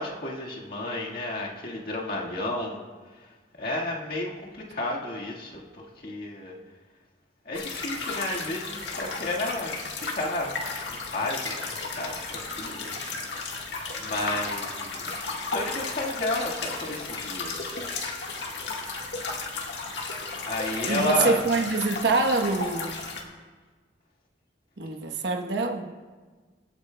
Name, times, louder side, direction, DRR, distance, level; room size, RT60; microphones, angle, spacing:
voice 1, 0.0-2.8 3.2-3.3 3.6-6.6 7.4-10.6 10.9-12.9 13.5-17.7 20.3-21.4, left 1 dB, 55° left, -3 dB, 1.7 m, -32 dB
sound 1, 7.5-23.2, left 3 dB, 85° left, 1.5 m, -34 dB
voice 2, 20.8-23.0 24.8-25.9, right 3 dB, 80° right, 4 dB, 1.0 m, -25 dB
24.0 x 8.7 x 2.2 m, 1.4 s
head